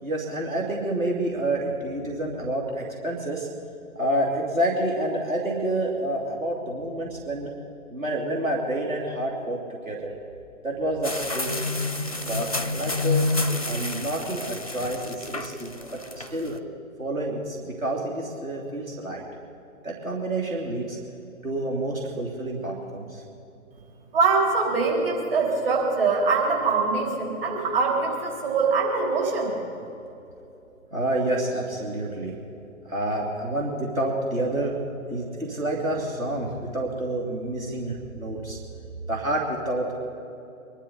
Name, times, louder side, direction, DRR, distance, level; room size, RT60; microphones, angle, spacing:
voice 1, 0.0-3.5 4.0-7.5 7.9-9.6 9.9-10.1 10.6-11.5 12.3-13.2 13.6-15.7 16.1-16.6 17.0-19.2 19.8-21.0 21.4-23.2 30.9-32.4 32.9-34.8 35.1-38.6 39.1-39.9, right 1 dB, 70° right, -2 dB, 2.8 m, -28 dB
sound 1, 11.0-16.6, left 3 dB, 25° left, 0.4 m, -29 dB
voice 2, 24.1-29.6, right 4 dB, 40° right, -2 dB, 3.7 m, -23 dB
24.0 x 11.5 x 4.1 m, 2.9 s
figure-of-eight pair, 140°, 43 cm